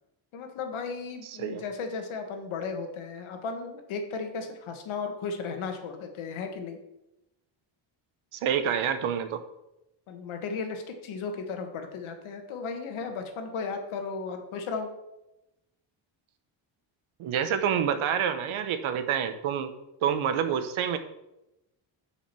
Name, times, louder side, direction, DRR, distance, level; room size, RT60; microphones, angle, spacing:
voice 1, 0.3-6.8 10.1-14.9, left 4 dB, 75° left, 5 dB, 1.6 m, -35 dB
voice 2, 8.3-9.4 17.2-19.7 20.0-21.0, right 8 dB, 75° right, 10 dB, 1.0 m, -27 dB
7.5 x 5.1 x 6.8 m, 0.91 s
cardioid pair, 165°, 49 cm